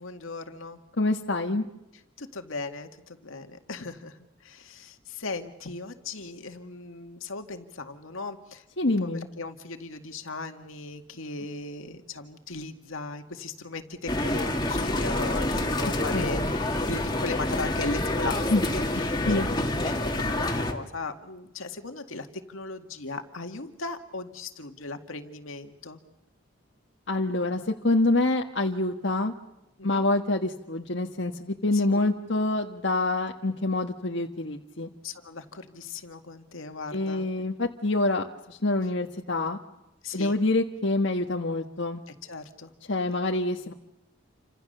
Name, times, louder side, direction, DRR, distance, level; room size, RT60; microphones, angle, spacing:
voice 1, 0.0-0.9 2.2-26.0 29.8-30.1 31.7-31.9 35.0-37.3 40.0-40.4 42.1-42.7, left 3 dB, 80° left, 6 dB, 2.1 m, -38 dB
voice 2, 1.0-1.6 8.8-9.3 16.1-16.5 18.5-18.6 19.3-19.5 27.1-29.3 29.8-34.9 36.9-39.6 40.1-42.0 42.9-43.7, left 2 dB, 60° left, 2 dB, 1.6 m, -26 dB
sound 1, 14.1-20.7, left 1 dB, 20° left, 2.5 m, -27 dB
29.5 x 26.0 x 6.8 m, 0.89 s
head